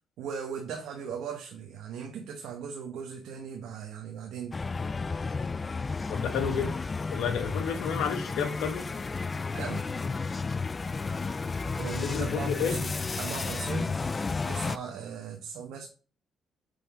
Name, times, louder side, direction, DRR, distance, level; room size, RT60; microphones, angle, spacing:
voice 1, 0.2-4.6 9.5-9.9 11.8-12.9 13.2-13.9 14.5-15.9, right 7 dB, 85° right, 1.0 m, -38 dB
sound 1, 4.5-14.8, left 4 dB, 30° left, 0.4 m, -32 dB
voice 2, 6.1-6.8 7.1-8.9 12.0-12.8, left 7 dB, 85° left, 1.4 m, -31 dB
6.7 x 5.4 x 3.5 m
cardioid pair, 90°, 0 cm